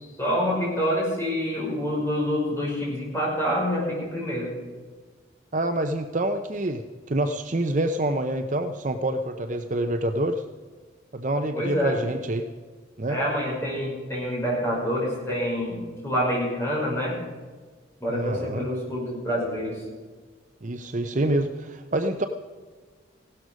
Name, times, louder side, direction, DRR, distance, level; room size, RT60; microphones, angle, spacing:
voice 1, 0.2-4.5 11.5-12.0 13.1-17.2 18.0-19.8, equal, 15° left, -5 dB, 5.7 m, -27 dB
voice 2, 5.5-10.4 11.1-12.5 13.0-13.2 18.1-18.7 20.6-22.3, right 1 dB, 40° right, 7 dB, 0.6 m, -27 dB
16.0 x 12.5 x 5.2 m, 1.4 s
head